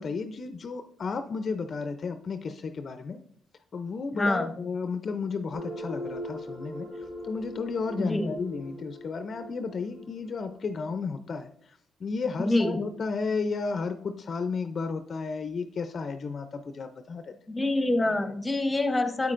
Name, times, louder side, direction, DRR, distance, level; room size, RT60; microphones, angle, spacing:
voice 1, 0.0-3.2 3.7-17.3, left 4 dB, 45° left, 9 dB, 0.5 m, -33 dB
voice 2, 4.1-4.5 8.0-8.3 12.4-12.8 17.5-19.3, left 2 dB, 15° left, 8 dB, 0.9 m, -26 dB
sound 1, 5.5-10.9, left 1 dB, 30° right, 2.4 m, -40 dB
8.3 x 8.2 x 2.5 m, 0.65 s
cardioid pair, 90°, 0 cm